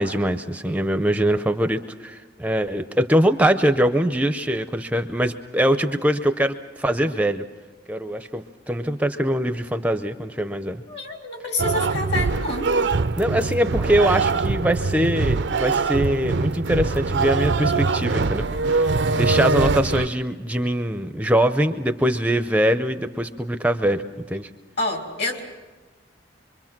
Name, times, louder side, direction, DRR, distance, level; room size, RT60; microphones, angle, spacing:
voice 1, 0.0-7.4 7.9-10.8 13.2-24.5, right 1 dB, 10° right, 9 dB, 0.6 m, -23 dB
voice 2, 10.9-12.7 24.8-25.4, left 2 dB, 65° left, 2 dB, 3.5 m, -27 dB
sound 1, 11.6-20.1, right 3 dB, 70° right, 0.6 m, -23 dB
25.0 x 24.5 x 6.0 m, 1.3 s
head